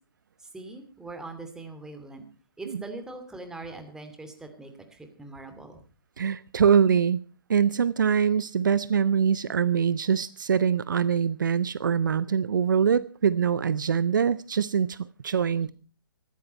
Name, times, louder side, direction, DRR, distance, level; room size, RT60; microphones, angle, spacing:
voice 1, 0.4-2.2 2.6-5.8 15.7-15.8, right 2 dB, 5° right, 6 dB, 2.6 m, -41 dB
voice 2, 6.2-7.2 7.5-15.7, right 7 dB, 60° right, 18 dB, 0.7 m, -23 dB
19.0 x 14.5 x 4.3 m, 0.35 s
figure-of-eight pair, 130°, 12 cm